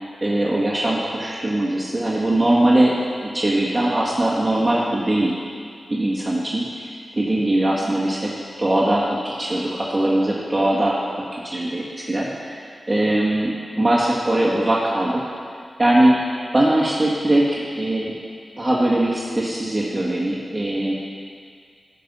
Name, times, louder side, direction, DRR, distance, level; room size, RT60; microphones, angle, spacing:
voice 1, 0.2-3.0 3.3-5.3 5.9-6.9 7.2-8.3 8.6-11.0 11.4-12.6 12.9-15.2 15.8-16.2 16.5-18.2 18.6-20.9, right 1 dB, 20° right, -6 dB, 1.7 m, -20 dB
13.5 x 5.5 x 6.1 m, 2.1 s
cardioid pair, 65°, 0 cm